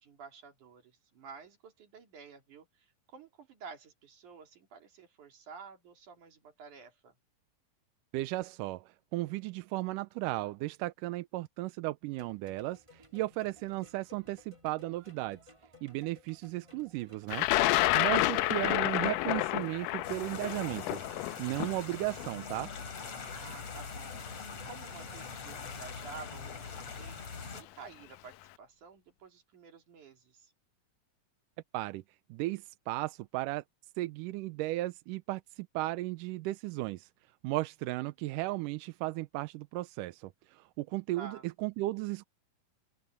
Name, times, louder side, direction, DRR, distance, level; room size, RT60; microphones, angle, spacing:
voice 1, 0.0-7.1 18.2-18.7 23.3-24.2 24.5-26.7 27.0-30.5 41.2-41.5, right 5 dB, 60° right, 4.4 m, -51 dB
voice 2, 8.1-15.4 15.8-21.0 21.4-22.7 31.7-32.0 32.3-33.6 34.0-37.1 37.4-42.2, right 18 dB, 80° right, 2.1 m, -35 dB
sound 1, 12.1-27.0, left 1 dB, 10° right, 1.4 m, -58 dB
Thunder, 17.3-23.3 24.2-24.3 25.5-25.7 26.0-26.5, left 17 dB, 80° left, 2.1 m, -30 dB
sound 2, 20.0-27.6, left 5 dB, 50° left, 4.3 m, -43 dB
open air
omnidirectional pair, 4.0 m